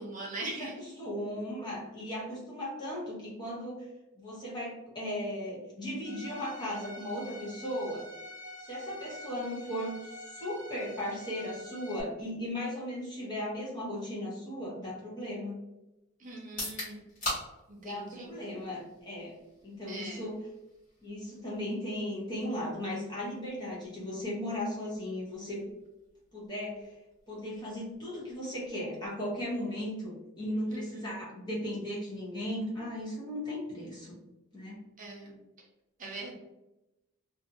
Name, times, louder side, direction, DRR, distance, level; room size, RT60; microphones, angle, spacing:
voice 1, 0.0-0.7 16.2-17.0 17.7-18.3 19.9-20.2 30.7-30.8 35.0-35.4 36.0-36.3, right 2 dB, 35° right, -1 dB, 0.6 m, -41 dB
voice 2, 0.6-3.9 4.1-8.0 8.6-15.6 17.7-19.4 19.6-20.4 21.0-25.6 26.3-27.0 27.3-34.1 34.5-34.8, left 1 dB, 20° left, -6 dB, 0.7 m, -37 dB
Bowed string instrument, 6.0-12.0, left 1 dB, 70° left, 0.6 m, -46 dB
sound 1, 16.4-30.3, left 1 dB, 35° left, 1.4 m, -46 dB
2.5 x 2.3 x 2.6 m, 0.96 s
head